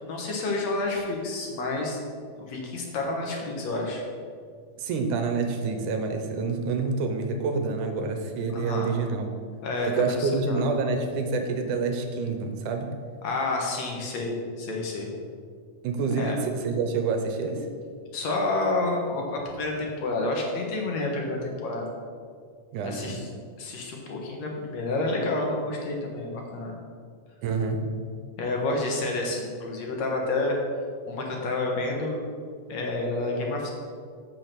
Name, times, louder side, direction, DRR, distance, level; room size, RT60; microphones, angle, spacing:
voice 1, 0.0-2.0 2.4-4.1 8.5-8.9 9.6-9.9 10.2-10.6 13.2-15.1 16.2-16.4 18.1-21.9 22.8-23.3 23.6-26.7 28.4-30.6 31.1-32.2 32.7-33.7, left 2 dB, 65° left, 0 dB, 2.3 m, -29 dB
voice 2, 4.8-9.3 9.8-12.9 15.8-17.7 22.7-23.2 27.4-27.8, right 4 dB, 80° right, 5 dB, 2.3 m, -27 dB
7.7 x 6.1 x 6.6 m, 2.1 s
omnidirectional pair, 3.6 m